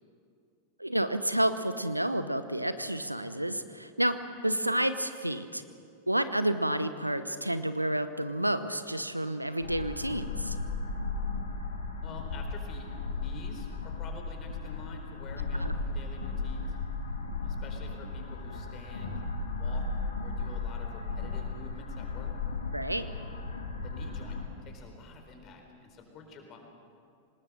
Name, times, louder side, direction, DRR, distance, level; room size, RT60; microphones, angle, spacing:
voice 1, 0.8-4.2 4.4-5.6 6.1-10.6 15.6-15.7 22.7-23.1, right 1 dB, 85° right, 12 dB, 0.8 m, -30 dB
sound 1, 9.6-24.5, left 3 dB, 70° left, 2.6 m, -35 dB
voice 2, 12.0-12.9 13.1-16.7 17.4-19.2 19.5-19.8 20.2-22.3 23.5-26.6, left 3 dB, 35° left, 4 dB, 4.4 m, -48 dB
25.5 x 20.0 x 6.6 m, 2.4 s
figure-of-eight pair, 90°, 0 cm